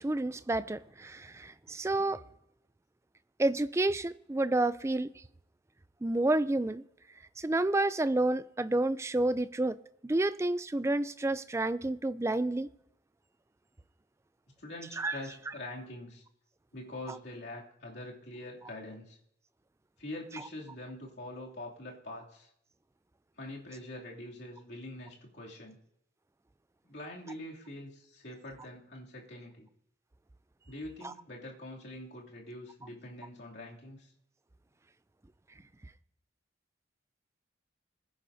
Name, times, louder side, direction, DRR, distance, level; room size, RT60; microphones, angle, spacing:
voice 1, 0.0-2.2 3.4-5.1 6.0-6.8 7.4-9.8 10.0-12.7 15.0-15.2 31.0-31.1, right 2 dB, 15° right, 0.3 m, -29 dB
voice 2, 14.6-16.2 16.7-19.2 20.0-22.5 23.4-25.8 26.8-29.7 30.7-34.1, left 1 dB, 60° left, 2.7 m, -44 dB
21.5 x 10.0 x 2.7 m
head